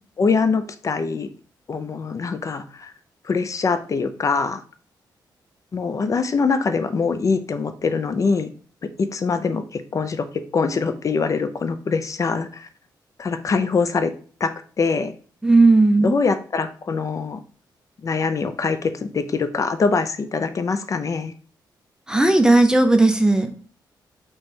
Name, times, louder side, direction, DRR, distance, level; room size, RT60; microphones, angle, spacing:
voice 1, 0.2-1.3 1.7-2.9 3.2-4.6 5.7-8.5 9.0-10.3 10.5-12.7 13.2-14.1 14.4-15.1 16.0-17.4 18.0-21.3, left 4 dB, 40° left, 10 dB, 0.5 m, -23 dB
voice 2, 15.4-16.1 22.1-23.5, right 2 dB, 10° right, 7 dB, 0.5 m, -15 dB
3.2 x 3.0 x 4.5 m, 0.42 s
cardioid pair, 95°, 8 cm